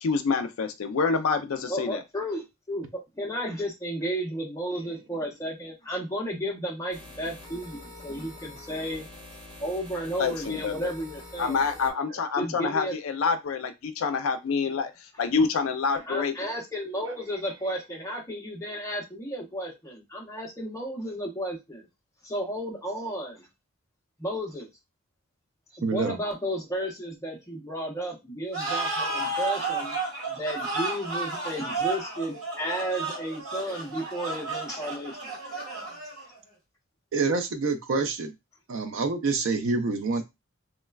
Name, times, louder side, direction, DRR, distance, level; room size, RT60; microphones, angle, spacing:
voice 1, 0.0-2.0 10.2-10.9 11.4-16.3, left 5 dB, 65° left, 8 dB, 0.4 m, -27 dB
voice 2, 1.7-9.1 9.6-11.6 12.3-13.0 16.0-21.9 22.2-23.5 24.2-24.7 25.7-30.0 30.3-35.3, equal, 15° left, -1 dB, 0.6 m, -33 dB
sound 1, 6.9-11.9, left 1 dB, 20° right, 0.9 m, -45 dB
voice 3, 25.8-26.2 35.6-35.7 37.1-38.3 38.7-40.2, right 4 dB, 60° right, 8 dB, 0.4 m, -27 dB
sound 2, 28.5-36.4, right 3 dB, 80° right, 1.5 m, -32 dB
3.1 x 2.2 x 2.2 m, 0.23 s
head